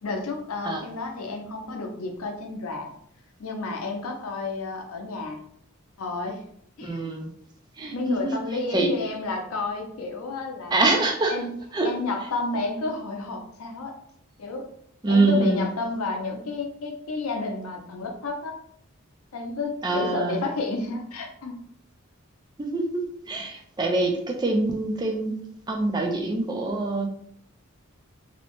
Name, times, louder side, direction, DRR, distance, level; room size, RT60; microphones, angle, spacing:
voice 1, 0.0-2.9 3.4-5.4 6.0-6.4 6.8-7.2 7.9-10.8 11.3-11.5 11.8-14.0 14.4-14.7 15.1-18.6 19.3-21.6, left 3 dB, 85° left, 3 dB, 0.5 m, -31 dB
voice 2, 6.8-7.3 7.8-8.3 8.7-8.9 10.7-11.4 11.7-11.9 15.0-15.7 19.8-20.5 22.6-25.4 25.7-27.1, right 2 dB, 20° right, 2 dB, 0.3 m, -25 dB
2.7 x 2.1 x 2.9 m, 0.68 s
head